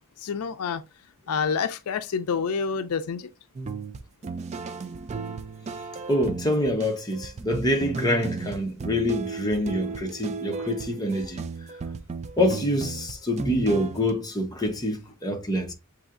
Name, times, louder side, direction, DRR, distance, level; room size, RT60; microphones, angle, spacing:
voice 1, 0.2-0.8 1.3-3.3, left 5 dB, 85° left, 0.4 m, -28 dB
sound 1, 3.5-14.1, right 4 dB, 30° right, 0.3 m, -35 dB
voice 2, 6.1-11.4 12.4-15.7, left 1 dB, 20° left, 0.9 m, -26 dB
7.1 x 2.8 x 2.5 m
head